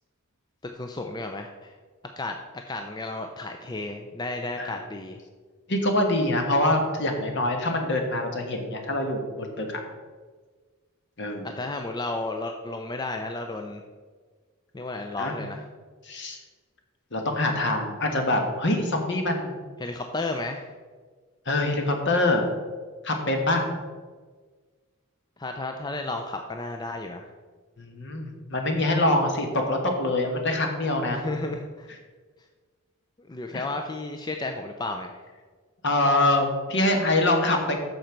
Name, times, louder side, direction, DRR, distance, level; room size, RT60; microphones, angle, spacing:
voice 1, 0.6-1.7 2.2-2.4 2.7-5.2 11.4-13.8 14.7-15.6 19.8-20.7 25.4-27.3 31.1-31.9 33.2-35.2, left 2 dB, 20° left, 4 dB, 0.4 m, -33 dB
voice 2, 5.7-9.8 11.2-11.5 15.2-15.3 16.0-16.4 17.1-19.5 21.5-22.5 23.0-23.6 27.8-31.2 33.5-33.6 35.8-37.8, left 1 dB, 55° left, 4 dB, 1.4 m, -24 dB
9.0 x 6.5 x 4.5 m, 1.5 s
head